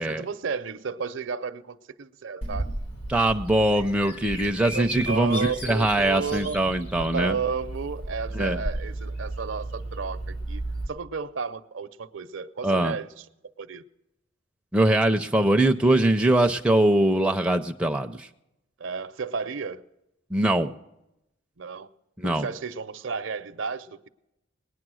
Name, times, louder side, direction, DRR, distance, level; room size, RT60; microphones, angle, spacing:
voice 1, 0.0-2.7 4.7-6.6 7.0-10.6 10.9-13.1 13.6-13.8 18.8-19.8 21.6-21.9 22.2-24.1, right 5 dB, 70° right, 0.6 m, -32 dB
Bird vocalization bird call bird song, 2.4-10.9, right 1 dB, 80° left, 4.0 m, -34 dB
voice 2, 3.1-7.4 8.3-8.6 12.6-13.0 14.7-18.3 20.3-20.7 22.2-22.5, right 1 dB, 5° right, 0.5 m, -22 dB
19.5 x 9.4 x 6.2 m
head